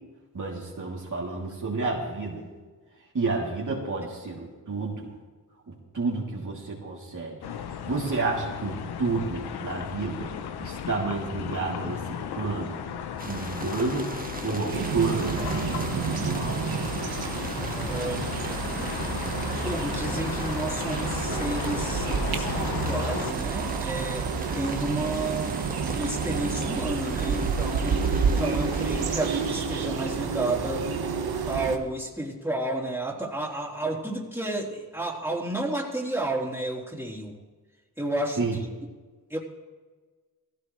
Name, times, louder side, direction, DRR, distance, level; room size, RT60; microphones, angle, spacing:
voice 1, 0.3-2.5 3.1-5.1 5.7-7.4 7.9-10.3 10.6-12.8 13.2-14.1 14.4-15.4 15.9-16.6 38.4-38.6, right 3 dB, 50° right, -3 dB, 3.0 m, -30 dB
sound 1, 7.4-23.3, left 8 dB, 85° left, 0.8 m, -35 dB
sound 2, 13.2-29.5, right 2 dB, 20° right, 1.6 m, -39 dB
sound 3, 14.7-31.8, right 5 dB, 70° right, 1.3 m, -29 dB
voice 2, 17.6-18.3 19.6-24.3 24.5-25.6 25.9-30.9 31.5-37.3 38.0-38.5 39.3-39.4, right 2 dB, 5° right, -5 dB, 3.7 m, -31 dB
16.5 x 16.0 x 3.2 m, 1.4 s
supercardioid pair, 45°, 38 cm